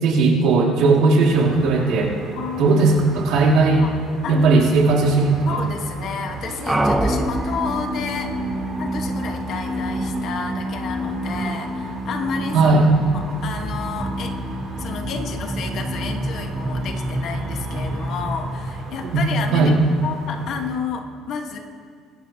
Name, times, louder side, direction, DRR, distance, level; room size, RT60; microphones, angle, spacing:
voice 1, 0.0-2.2 2.6-3.9 4.3-5.6 12.5-12.9 19.1-19.2 19.5-19.7, right 3 dB, 70° right, -1 dB, 2.3 m, -17 dB
sound 1, 1.3-20.8, right 4 dB, 55° right, 2.8 m, -37 dB
voice 2, 2.4-2.9 3.8-3.9 4.2-4.6 5.5-8.4 8.8-12.7 13.1-14.3 14.8-19.7 20.0-21.6, left 6 dB, 55° left, 4 dB, 1.4 m, -30 dB
sound 2, 6.7-19.5, right 1 dB, 10° right, 0.8 m, -27 dB
23.0 x 10.5 x 2.9 m, 2.1 s
cardioid pair, 125°, 0 cm